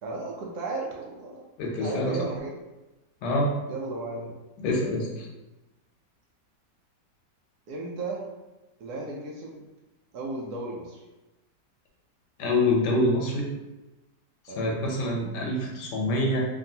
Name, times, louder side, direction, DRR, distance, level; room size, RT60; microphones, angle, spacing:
voice 1, 0.0-1.4 1.8-2.6 3.7-4.4 7.7-8.3 8.8-9.6 10.1-11.0 14.5-14.8, right 3 dB, 70° right, -2 dB, 1.0 m, -35 dB
voice 2, 1.6-2.3 3.2-3.5 4.6-5.3 12.4-13.5 14.4-16.5, left 1 dB, 75° left, -1 dB, 1.2 m, -26 dB
2.9 x 2.6 x 2.7 m, 1.1 s
omnidirectional pair, 1.9 m